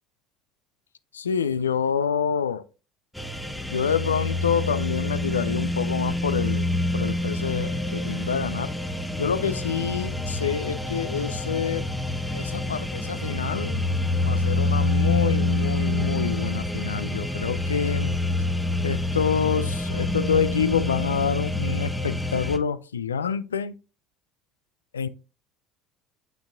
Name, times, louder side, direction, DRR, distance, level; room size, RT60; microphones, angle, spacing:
voice 1, 1.3-2.6 3.7-8.7 9.2-11.8 12.3-13.8 14.2-18.2 18.8-23.7 24.9-25.1, left 7 dB, 80° left, 0.3 m, -27 dB
sound 1, 3.2-22.6, left 2 dB, 5° left, 0.7 m, -27 dB
6.9 x 5.8 x 2.4 m
figure-of-eight pair, 65°, 0 cm